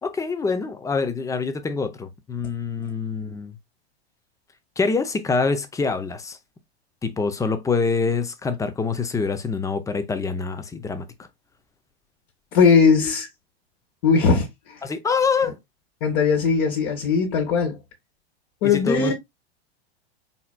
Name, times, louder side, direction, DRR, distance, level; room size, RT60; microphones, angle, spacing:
voice 1, 0.0-3.6 4.8-6.4 7.0-11.1 14.8-15.5 18.6-19.1, left 4 dB, 10° left, 0.5 m, -25 dB
voice 2, 12.5-13.3 14.0-14.8 16.0-17.8 18.6-19.1, left 5 dB, 55° left, 1.5 m, -19 dB
4.2 x 4.2 x 2.2 m
hypercardioid pair, 115°, 32 cm